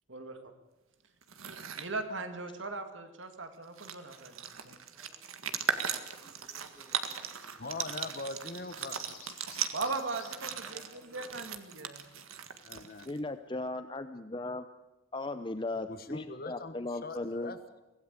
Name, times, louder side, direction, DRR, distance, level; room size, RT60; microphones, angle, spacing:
voice 1, 0.1-0.4 1.8-4.3 4.6-4.8 9.7-12.0, right 3 dB, 65° right, 7 dB, 2.2 m, -38 dB
sound 1, 1.2-1.9 3.3-3.4 3.6-13.2, right 7 dB, 85° right, 1.8 m, -38 dB
voice 2, 4.0-4.4 4.9-5.5 5.8-7.8 10.6-11.5, right 1 dB, 5° right, -1 dB, 7.0 m, -60 dB
sound 2, 7.5-7.6 8.5-10.6, left 9 dB, 80° left, 6.2 m, -54 dB
voice 3, 7.6-9.1 12.6-13.1 15.9-17.8, left 3 dB, 45° left, 10 dB, 1.3 m, -42 dB
voice 4, 13.1-14.6 15.1-17.5, left 2 dB, 25° left, 10 dB, 0.7 m, -37 dB
24.5 x 17.0 x 8.2 m, 1.0 s
head